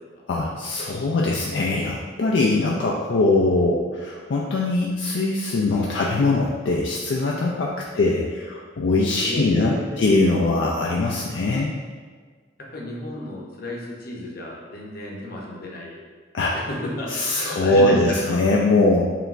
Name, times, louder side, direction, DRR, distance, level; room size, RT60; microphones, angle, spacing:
voice 1, 0.3-11.7 16.3-16.6 17.1-19.0, left 2 dB, 75° left, -3 dB, 0.4 m, -21 dB
voice 2, 7.9-8.3 9.1-10.2 12.7-16.0 16.5-18.4, left 1 dB, 55° left, -2 dB, 0.8 m, -32 dB
4.9 x 3.3 x 2.5 m, 1.5 s
head